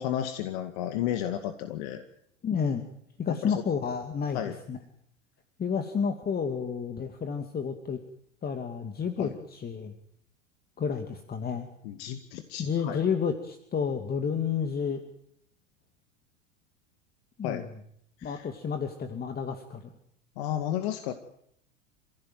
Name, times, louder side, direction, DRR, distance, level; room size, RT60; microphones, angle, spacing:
voice 1, 0.0-2.0 3.4-3.5 4.3-4.6 9.2-9.3 11.8-13.0 17.4-17.7 18.2-18.5 20.4-21.1, left 11 dB, 55° left, 8 dB, 2.2 m, -32 dB
voice 2, 2.4-2.9 3.2-4.8 5.6-8.0 8.4-9.9 10.8-11.7 12.6-15.0 17.4-17.7 18.2-19.9, left 6 dB, 25° left, 6 dB, 2.7 m, -31 dB
28.5 x 16.5 x 9.3 m, 0.71 s
figure-of-eight pair, 85°, 37 cm